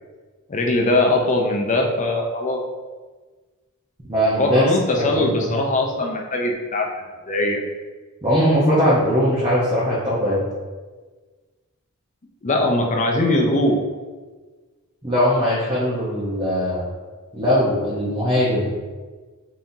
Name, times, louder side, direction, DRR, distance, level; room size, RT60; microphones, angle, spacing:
voice 1, 0.5-2.6 4.4-6.9 7.3-7.6 12.4-13.8, left 2 dB, 35° left, 1 dB, 0.6 m, -21 dB
voice 2, 4.1-4.6 5.0-5.5 8.2-10.4 15.0-16.8 17.3-18.7, equal, 20° right, -10 dB, 0.9 m, -20 dB
5.4 x 2.8 x 2.7 m, 1.4 s
head